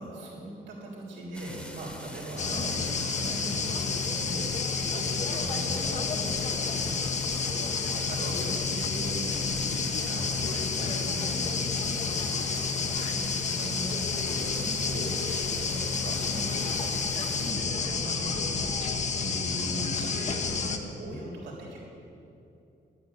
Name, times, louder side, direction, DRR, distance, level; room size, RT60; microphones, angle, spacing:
voice 1, 0.0-13.3 13.6-17.0 17.3-18.8 19.2-21.8, right 1 dB, 85° right, -4 dB, 3.5 m, -39 dB
sound 1, 1.3-17.5, equal, 5° left, 1.4 m, -44 dB
sound 2, 2.4-20.8, left 5 dB, 40° left, 1.1 m, -30 dB
11.5 x 9.0 x 9.6 m, 2.7 s
wide cardioid pair, 155°, 18 cm